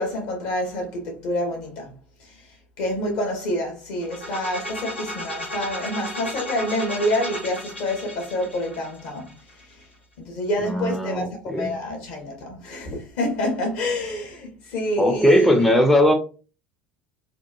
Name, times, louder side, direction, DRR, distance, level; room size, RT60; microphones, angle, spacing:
voice 1, 0.0-1.9 2.2-2.4 2.8-9.3 10.2-15.6, left 1 dB, 55° left, 1.0 m, -27 dB
sound 1, 4.0-9.8, equal, 85° left, 0.7 m, -34 dB
voice 2, 10.6-11.7 15.0-16.1, left 1 dB, ahead, 0.4 m, -19 dB
2.8 x 2.3 x 2.3 m
figure-of-eight pair, 70°, 6 cm